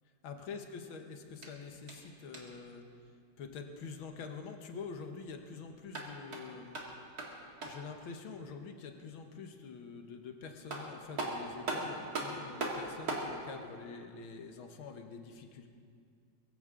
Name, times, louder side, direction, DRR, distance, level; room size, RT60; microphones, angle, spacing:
voice 1, 0.2-2.9 3.4-6.9 7.6-15.7, left 5 dB, 80° left, 5 dB, 1.9 m, -46 dB
sound 1, 1.3-2.7 5.7-7.9 10.2-10.3 10.7-13.3, right 2 dB, 50° right, 2.4 m, -39 dB
23.0 x 15.0 x 3.7 m, 2.3 s
omnidirectional pair, 2.2 m